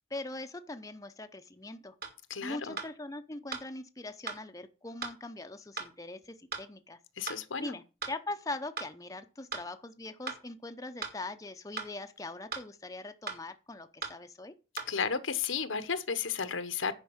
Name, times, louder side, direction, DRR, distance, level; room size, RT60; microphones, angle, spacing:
voice 1, 0.1-1.9 2.4-7.0 7.6-14.5, left 2 dB, 15° left, 0.6 m, -41 dB
sound 1, 2.0-2.2 2.8-2.9 3.5-3.7 4.3-4.4 5.0-5.2 5.8-5.9 6.5-6.7 7.3-7.4 8.0-8.2 8.8-8.9 9.5-9.7 10.3-10.4 11.0-11.2 11.8-11.9 12.5-12.7 13.3-13.4 14.0-14.2 14.8-14.9, right 5 dB, 50° right, 2.4 m, -38 dB
voice 2, 2.3-2.8 7.2-7.7 14.9-16.9, left 6 dB, 85° left, 1.1 m, -33 dB
10.0 x 5.3 x 7.2 m
head